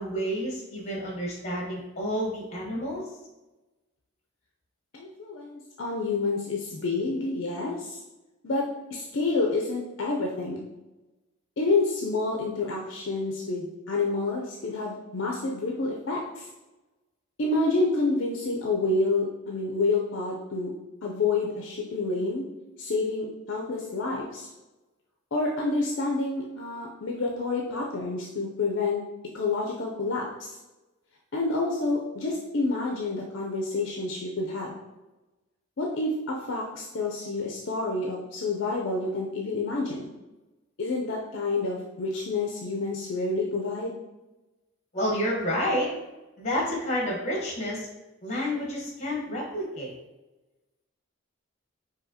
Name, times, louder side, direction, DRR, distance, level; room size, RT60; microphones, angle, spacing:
voice 1, 0.0-3.0 44.9-45.9 46.4-47.9 48.2-49.9, equal, 30° left, -2 dB, 1.0 m, -29 dB
voice 2, 4.9-8.0 8.4-10.7 11.6-16.5 17.4-20.7 21.0-22.5 22.8-24.5 25.3-29.0 29.3-30.6 31.3-34.8 35.8-40.1 40.8-44.0, left 3 dB, 60° left, -1 dB, 0.5 m, -28 dB
5.0 x 2.7 x 2.7 m, 1.1 s
head